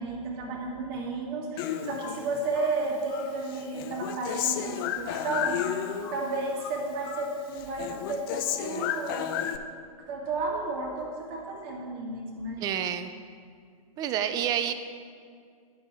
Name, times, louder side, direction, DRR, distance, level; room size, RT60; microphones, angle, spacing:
voice 1, 0.0-5.7 6.1-9.4 10.1-12.6, right 3 dB, 40° right, -1 dB, 1.8 m, -33 dB
Human voice, 1.6-2.7 3.1-6.3 6.6-7.3 7.6-9.6, left 10 dB, 35° left, 0.5 m, -32 dB
voice 2, 12.6-13.1 14.0-14.7, right 10 dB, 20° right, 10 dB, 0.4 m, -28 dB
10.5 x 5.5 x 4.7 m, 2.2 s
hypercardioid pair, 120°, 19 cm